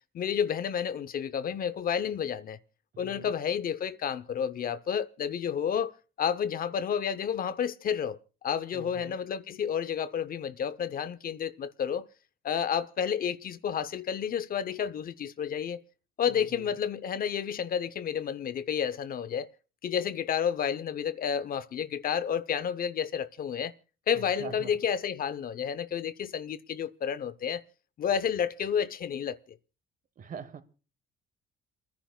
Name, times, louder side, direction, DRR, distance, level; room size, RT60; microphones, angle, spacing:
voice 1, 0.1-2.6 3.0-5.9 6.2-8.2 8.4-12.1 12.4-15.8 16.2-19.5 19.8-23.7 24.1-27.6 28.0-29.4, left 8 dB, 50° left, 0.7 m, -30 dB
voice 2, 2.9-3.3 8.7-9.2 16.3-16.7 24.1-24.7 30.2-30.6, right 6 dB, 45° right, 1.2 m, -44 dB
29.5 x 10.5 x 2.2 m
cardioid pair, 115°, 20 cm